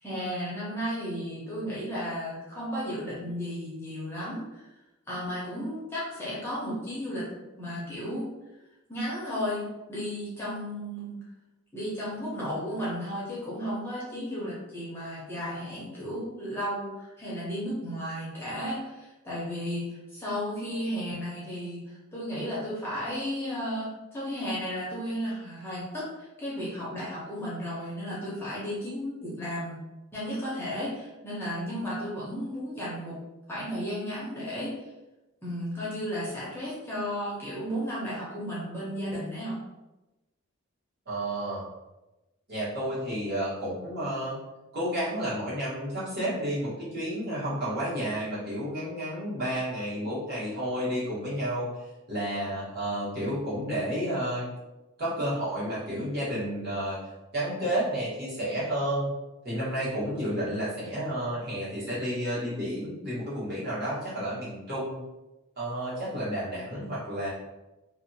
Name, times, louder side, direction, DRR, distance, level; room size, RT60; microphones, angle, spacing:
voice 1, 0.0-4.7 5.1-7.2 7.6-8.3 8.9-11.2 11.7-29.8 30.1-33.2 33.5-34.9 35.4-39.6, equal, 10° left, -8 dB, 0.7 m, -34 dB
voice 2, 41.1-41.6 42.5-44.4 44.7-51.7 52.1-54.5 55.0-57.0 57.3-59.1 59.4-65.0 65.6-67.3, equal, 45° right, -9 dB, 1.3 m, -31 dB
2.6 x 2.3 x 2.6 m, 1.0 s
head